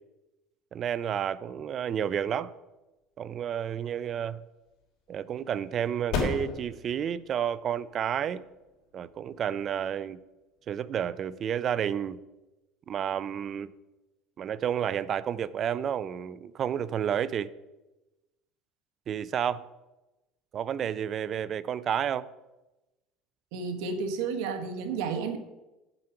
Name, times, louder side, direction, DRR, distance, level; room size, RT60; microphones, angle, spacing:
voice 1, 0.7-2.5 3.2-4.4 5.1-8.4 8.9-10.2 10.7-12.2 12.9-13.7 14.4-17.5 19.1-19.7 20.5-22.3, right 9 dB, 40° right, 0.4 m, -31 dB
sound 1, 3.5-10.8, left 4 dB, 65° left, 3.2 m, -38 dB
voice 2, 23.5-25.4, right 5 dB, 85° right, 1.4 m, -31 dB
8.9 x 7.7 x 5.8 m
cardioid pair, 140°, 0 cm